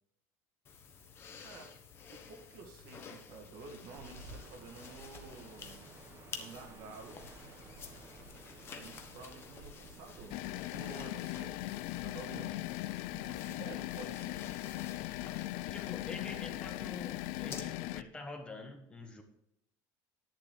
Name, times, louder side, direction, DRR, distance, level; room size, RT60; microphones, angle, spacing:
sound 1, 0.6-17.6, left 6 dB, 30° left, 1.2 m, -51 dB
voice 1, 1.4-1.7 2.1-5.9 6.3-7.3 8.7-12.5 13.1-14.6, right 4 dB, 60° right, 2 dB, 2.0 m, -51 dB
sound 2, 3.9-12.0, right 3 dB, 35° right, 1.3 m, -54 dB
sound 3, 10.3-18.0, left 17 dB, 70° left, 0.4 m, -39 dB
voice 2, 15.7-19.2, left 3 dB, 15° left, 4 dB, 1.2 m, -46 dB
11.0 x 10.5 x 3.3 m, 0.76 s
cardioid pair, 165°, 8 cm